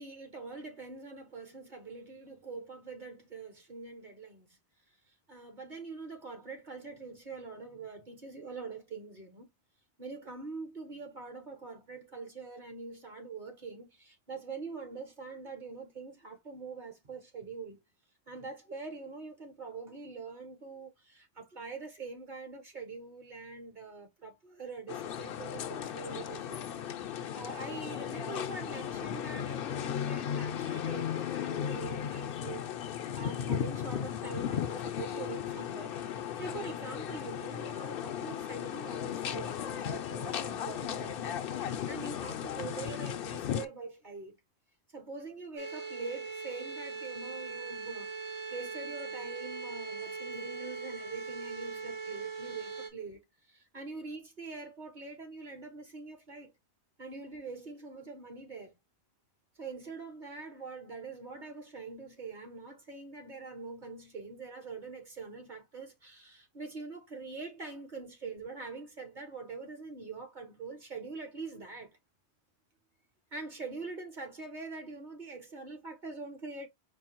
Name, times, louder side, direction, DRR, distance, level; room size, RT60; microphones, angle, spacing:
voice 1, 0.0-4.6 5.1-9.5 10.0-17.8 18.3-44.4 44.9-56.5 57.0-58.7 59.6-72.0 73.3-76.7, right 4 dB, 45° right, 1.3 m, -44 dB
sound 1, 24.9-43.7, left 9 dB, 60° left, 0.7 m, -36 dB
sound 2, 45.6-52.9, right 4 dB, 85° right, 2.0 m, -40 dB
4.7 x 2.3 x 4.3 m
omnidirectional pair, 1.1 m